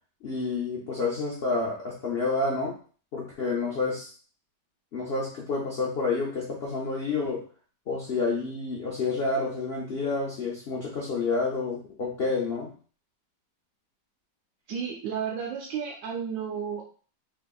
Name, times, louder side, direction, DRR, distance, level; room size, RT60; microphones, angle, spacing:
voice 1, 0.2-2.8 3.1-4.1 4.9-7.4 7.9-12.7, left 3 dB, 75° left, -4 dB, 0.5 m, -29 dB
voice 2, 14.7-16.9, right 7 dB, 90° right, -2 dB, 1.4 m, -32 dB
3.5 x 3.3 x 2.3 m, 0.41 s
omnidirectional pair, 1.9 m